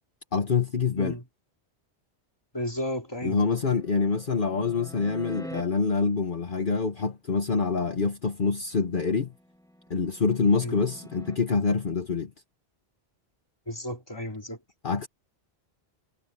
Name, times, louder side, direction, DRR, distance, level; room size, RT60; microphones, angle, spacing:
voice 1, 0.3-1.2 3.2-9.3 9.9-12.3 14.8-15.1, left 5 dB, 55° left, 1.4 m, -26 dB
voice 2, 2.5-3.6 10.6-10.8 13.7-14.6, left 1 dB, 25° left, 2.9 m, -33 dB
sound 1, 3.4-5.6 9.0-11.4, equal, 5° left, 3.0 m, -45 dB
omnidirectional pair, 1.1 m